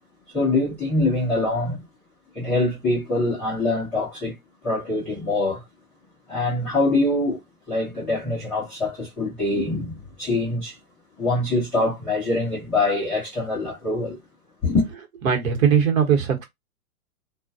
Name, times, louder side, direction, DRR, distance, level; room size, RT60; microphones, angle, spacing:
voice 1, 0.3-1.8 2.3-4.3 4.6-5.6 6.3-7.4 7.7-10.8 11.2-14.2 14.6-14.9, left 2 dB, 5° left, 0.3 m, -24 dB
voice 2, 15.2-16.4, right 7 dB, 65° right, 1.1 m, -19 dB
2.2 x 2.1 x 2.5 m
hypercardioid pair, 120°, 43 cm